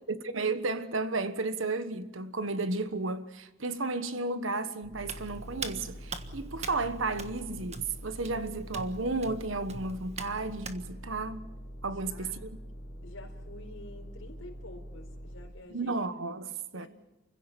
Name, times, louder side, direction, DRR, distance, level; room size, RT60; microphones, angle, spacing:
voice 1, 0.1-11.5 11.8-12.5 15.7-16.9, right 3 dB, 75° right, 1.3 m, -33 dB
sound 1, 4.8-15.5, equal, 40° left, 4.4 m, -45 dB
Hands, 5.0-10.8, right 5 dB, 35° right, 1.5 m, -44 dB
voice 2, 11.9-12.4 13.0-16.0 16.7-16.9, left 2 dB, 80° left, 4.5 m, -49 dB
29.0 x 16.0 x 6.9 m
head